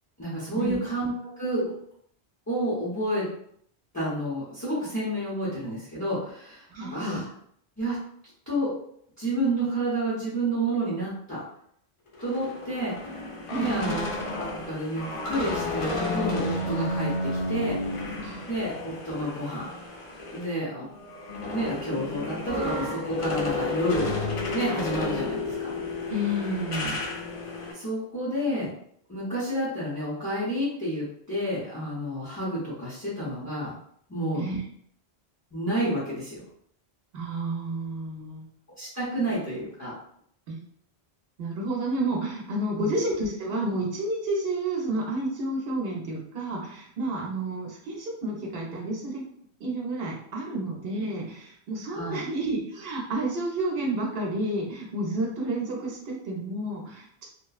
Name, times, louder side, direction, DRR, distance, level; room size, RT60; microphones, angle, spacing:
voice 1, 0.2-1.7 2.5-3.3 3.9-7.3 7.8-8.0 8.5-8.7 9.2-11.4 12.2-13.2 13.5-14.0 14.3-17.8 18.5-19.7 20.3-20.9 21.5-24.1 24.5-25.7 27.7-28.7 29.1-33.7 34.1-34.5 35.5-36.4 38.8-39.9 42.7-42.9 51.9-52.2, right 1 dB, 15° left, -9 dB, 0.8 m, -30 dB
voice 2, 6.7-7.2 13.5-14.0 18.2-18.5 26.1-27.0 34.3-34.6 37.1-38.5 40.5-40.6 41.4-49.3 49.6-57.3, right 1 dB, 65° right, -2 dB, 1.0 m, -30 dB
sound 1, 12.1-20.5 20.9-27.7, left 2 dB, 50° left, 0.4 m, -32 dB
2.9 x 2.2 x 2.3 m, 0.66 s
omnidirectional pair, 1.1 m